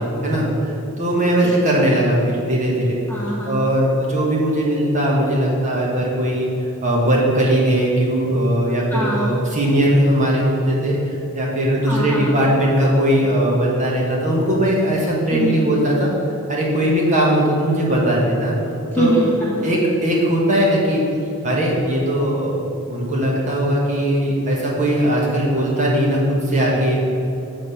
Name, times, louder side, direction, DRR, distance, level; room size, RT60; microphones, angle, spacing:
voice 1, 0.0-3.0 3.4-6.5 6.8-11.0 11.3-16.1 16.5-18.5 18.9-19.1 19.6-21.0 21.4-22.6 22.9-27.0, right 1 dB, 35° right, -4 dB, 1.4 m, -19 dB
voice 2, 3.1-3.7 8.9-9.3 11.9-12.4 15.3-15.8 19.0-19.8, right 1 dB, 10° left, -5 dB, 0.9 m, -24 dB
7.6 x 4.1 x 6.7 m, 3.0 s
head